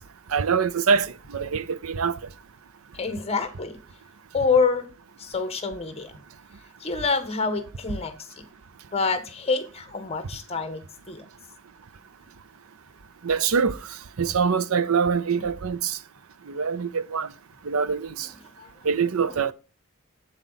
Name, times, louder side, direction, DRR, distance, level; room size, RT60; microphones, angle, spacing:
voice 1, 0.3-2.2 13.2-13.8 14.2-16.0 16.5-17.3 17.6-18.3 18.8-19.5, right 6 dB, 75° right, 0.6 m, -24 dB
voice 2, 2.9-3.8 4.3-4.9 5.2-6.1 6.8-8.5 8.9-11.2 18.6-18.7, left 4 dB, 30° left, 1.3 m, -27 dB
8.2 x 7.2 x 4.1 m
head